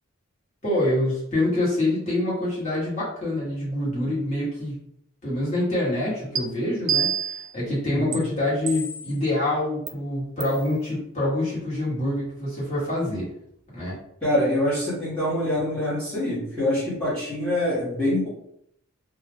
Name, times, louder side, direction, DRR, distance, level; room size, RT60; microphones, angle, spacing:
voice 1, 0.6-4.8 5.2-13.3 13.7-14.0, left 1 dB, 30° left, -8 dB, 1.2 m, -26 dB
sound 1, 6.4-6.5 6.9-7.5 8.1-8.2 8.7-9.2 9.9-10.0 10.4-10.6, right 8 dB, 60° right, 0.3 m, -27 dB
voice 2, 7.8-8.2 14.2-18.3, left 1 dB, 5° left, -11 dB, 0.9 m, -25 dB
2.3 x 2.2 x 3.4 m, 0.73 s
head